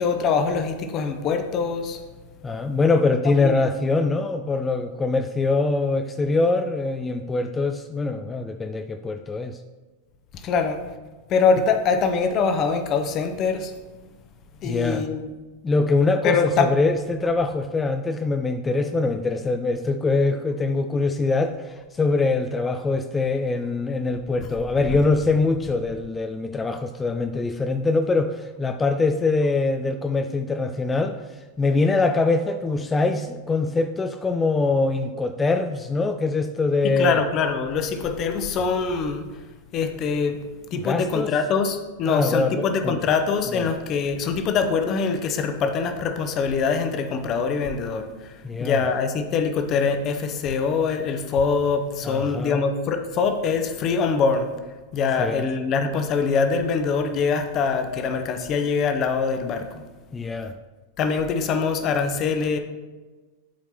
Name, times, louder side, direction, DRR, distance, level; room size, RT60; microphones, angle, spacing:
voice 1, 0.0-2.0 3.4-3.5 10.4-10.8 11.3-13.7 14.6-15.3 16.2-16.7 36.8-39.3 39.7-40.4 40.7-48.3 48.6-54.5 54.9-59.7 61.0-62.6, left 5 dB, 35° left, 7 dB, 0.7 m, -23 dB
voice 2, 2.4-9.6 14.6-15.1 15.6-37.2 40.7-41.3 42.1-43.0 43.5-43.6 48.4-48.9 52.0-52.6 55.2-55.4 60.1-60.5, left 3 dB, 15° left, 7 dB, 0.3 m, -23 dB
11.5 x 4.5 x 2.9 m, 1.2 s
figure-of-eight pair, 90°, 0 cm